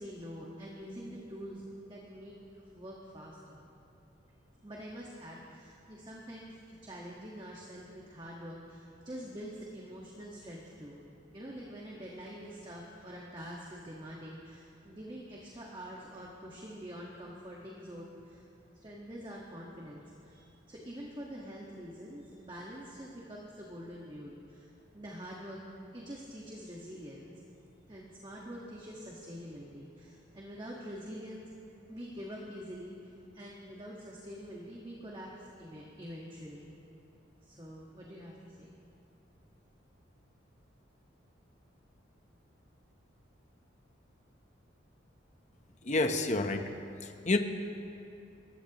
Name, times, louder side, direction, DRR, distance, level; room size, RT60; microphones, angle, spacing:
voice 1, 0.0-2.4 2.7-3.6 4.6-6.5 6.8-11.0 11.3-18.4 18.7-25.6 25.9-27.3 27.9-31.4 31.9-33.0 33.3-36.7 37.4-38.7, equal, 25° right, -4 dB, 1.6 m, -45 dB
voice 2, 45.8-46.7 47.0-47.4, left 2 dB, 35° left, 6 dB, 0.9 m, -29 dB
27.5 x 15.0 x 3.0 m, 2.6 s
head